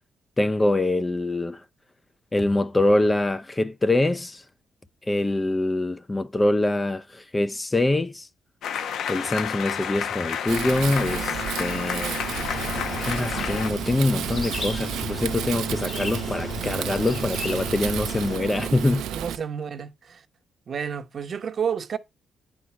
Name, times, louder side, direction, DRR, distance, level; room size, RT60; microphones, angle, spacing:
voice 1, 0.4-1.6 2.3-4.4 5.1-8.3 9.1-12.2 13.0-19.0, left 2 dB, 15° left, 0.5 m, -24 dB
sound 1, 8.6-13.7, left 8 dB, 75° left, 0.8 m, -30 dB
Wind, 10.5-19.4, right 11 dB, 90° right, 0.6 m, -32 dB
sound 2, 12.3-18.4, left 3 dB, 35° left, 1.4 m, -34 dB
voice 2, 19.1-20.2 20.7-22.0, right 7 dB, 50° right, 0.9 m, -30 dB
9.6 x 4.4 x 4.6 m
cardioid pair, 90°, 0 cm